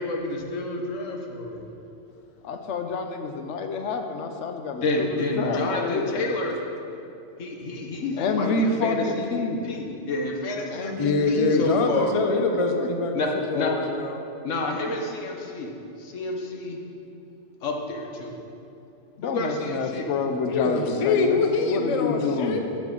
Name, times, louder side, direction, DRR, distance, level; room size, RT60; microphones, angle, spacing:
voice 1, 0.0-1.6 4.8-6.6 7.4-9.3 9.6-12.1 13.1-13.3 13.5-13.7 14.4-15.7 16.0-16.8 17.6-18.3 19.2-20.0, left 2 dB, 90° left, 1 dB, 1.3 m, -29 dB
voice 2, 2.4-6.2 8.2-9.6 10.7-11.7 12.8-12.9 19.2-22.6, left 4 dB, 70° left, 6 dB, 1.0 m, -28 dB
voice 3, 11.0-14.2 20.5-22.6, left 3 dB, 35° left, 4 dB, 0.5 m, -24 dB
9.0 x 7.4 x 3.9 m, 2.7 s
omnidirectional pair, 1.3 m